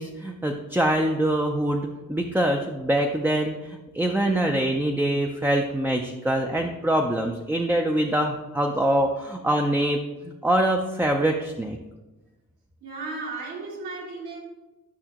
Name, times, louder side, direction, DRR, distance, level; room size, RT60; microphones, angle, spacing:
voice 1, 0.0-11.8, right 1 dB, 5° right, 3 dB, 0.4 m, -24 dB
voice 2, 12.8-14.4, right 3 dB, 80° right, -4 dB, 2.7 m, -34 dB
11.0 x 6.0 x 2.9 m, 1.1 s
wide cardioid pair, 155°, 30 cm